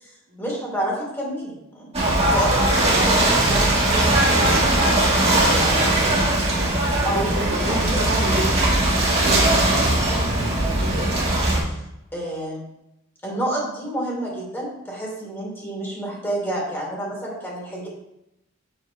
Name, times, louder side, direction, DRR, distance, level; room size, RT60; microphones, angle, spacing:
voice 1, 0.4-1.9 2.2-4.3 5.5-6.0 7.0-8.0 9.7-10.0 10.7-11.8 12.1-12.6 13.2-17.9, right 1 dB, 10° left, -4 dB, 2.9 m, -30 dB
Ocean / Boat Water vehicle, 1.9-11.6, right 1 dB, 30° right, 1.9 m, -19 dB
voice 2, 2.3-3.0 5.1-6.3 7.0-8.9, right 1 dB, 70° right, -2 dB, 1.6 m, -31 dB
7.3 x 4.4 x 5.0 m, 0.86 s
head